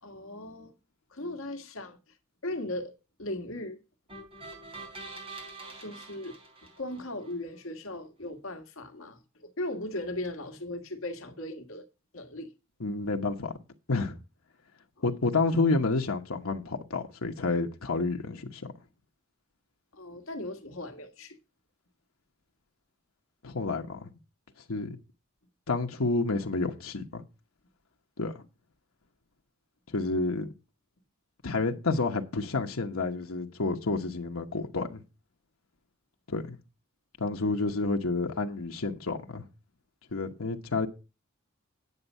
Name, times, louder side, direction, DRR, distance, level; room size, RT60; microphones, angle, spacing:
voice 1, 0.0-0.7 1.1-2.0 2.4-3.8 5.8-6.3 6.8-11.9 12.1-12.5 19.9-21.4, left 1 dB, 70° left, 1.7 m, -38 dB
sound 1, 4.1-7.3, right 3 dB, 30° right, 3.5 m, -45 dB
voice 2, 12.8-13.5 13.9-14.2 15.0-18.7 23.4-24.1 24.7-25.0 25.7-27.2 28.2-28.3 29.9-30.5 31.4-35.0 36.3-36.6 37.2-39.5 40.1-40.9, left 3 dB, 85° left, 1.1 m, -29 dB
9.7 x 7.2 x 5.5 m
head